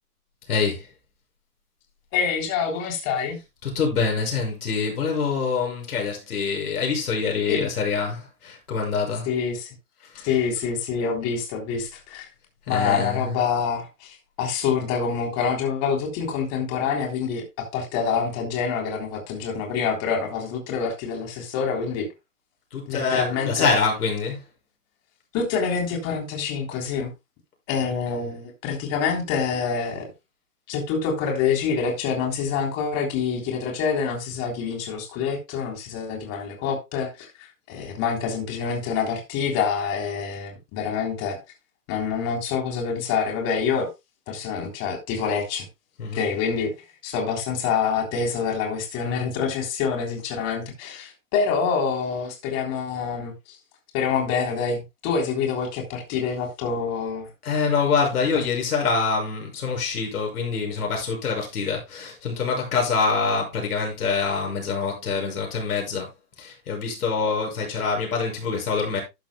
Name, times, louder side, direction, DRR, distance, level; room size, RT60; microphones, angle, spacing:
voice 1, 0.5-0.9 3.6-9.3 10.1-10.4 12.7-13.5 22.7-24.4 27.8-27.9 46.0-46.3 57.4-66.1 66.4-69.0, left 5 dB, 65° left, 6.3 m, -25 dB
voice 2, 2.1-3.4 7.5-7.7 9.3-9.7 10.2-12.3 12.7-22.1 22.9-23.7 25.3-27.1 27.7-30.1 30.7-41.4 41.9-43.9 44.3-45.7 46.1-46.7 47.0-53.6 53.9-57.3, left 6 dB, 30° left, 3.5 m, -26 dB
12.0 x 11.5 x 2.2 m
hypercardioid pair, 120°, 47 cm